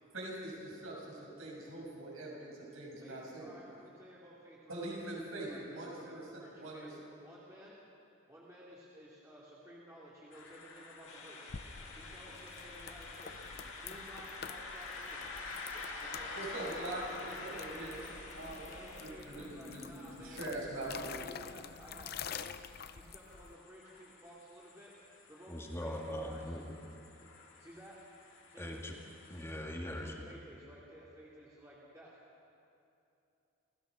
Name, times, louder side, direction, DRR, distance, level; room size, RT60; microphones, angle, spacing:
voice 1, 0.1-3.5 4.7-6.3 6.6-6.9 16.3-17.9 18.3-21.2, right 1 dB, 75° right, -3 dB, 6.6 m, -43 dB
voice 2, 3.0-6.9 7.2-7.8 8.3-11.5 11.9-13.4 13.8-15.3 15.7-18.1 18.6-20.5 20.7-22.5 22.9-24.9 25.3-26.6 27.6-28.0 28.5-28.8 29.9-32.1, equal, 15° right, -7 dB, 2.4 m, -54 dB
sound 1, 10.3-29.6, left 3 dB, 65° left, 2.6 m, -49 dB
sound 2, 11.1-19.6, left 3 dB, 30° left, 2.2 m, -54 dB
sound 3, 11.5-23.5, left 7 dB, 45° left, 0.6 m, -48 dB
voice 3, 25.5-26.8 28.6-28.9 29.3-30.2, equal, 10° left, 0 dB, 2.0 m, -41 dB
28.0 x 15.5 x 6.3 m, 2.8 s
head